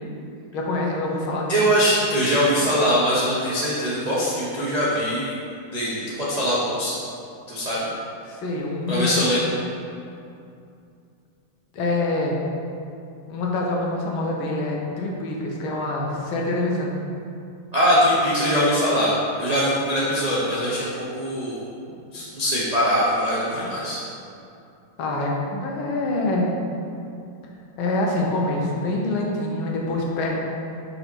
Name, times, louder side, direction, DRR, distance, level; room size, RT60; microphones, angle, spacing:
voice 1, 0.5-1.6 8.3-9.2 11.7-12.4 13.3-17.0 23.5-23.7 25.0-26.5 27.8-30.4, left 2 dB, 90° left, -1 dB, 1.7 m, -25 dB
voice 2, 1.5-5.3 5.7-6.9 7.5-7.9 8.9-9.5 17.7-21.6 22.1-24.0, equal, 60° right, -9 dB, 0.4 m, -22 dB
5.4 x 4.1 x 4.4 m, 2.6 s
omnidirectional pair, 2.2 m